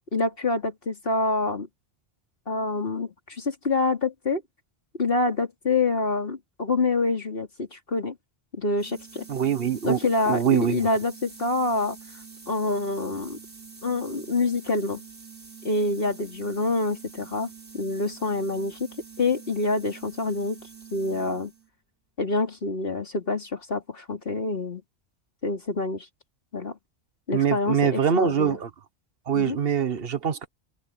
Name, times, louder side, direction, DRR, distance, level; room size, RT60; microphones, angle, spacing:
voice 1, 0.1-1.7 2.5-4.4 5.0-8.2 8.6-9.3 9.8-12.0 12.5-13.4 13.8-15.0 15.6-17.5 17.7-18.9 19.2-20.6 20.9-21.5 22.2-24.8 25.4-26.1 26.5-26.8 27.3-28.6 29.3-29.6, left 2 dB, 55° left, 3.6 m, -26 dB
sound 1, 8.8-21.7, right 6 dB, 75° right, 4.5 m, -46 dB
voice 2, 9.3-10.0 10.3-10.8 27.3-28.7 29.3-30.5, right 8 dB, 60° right, 1.3 m, -23 dB
omnidirectional pair, 1.1 m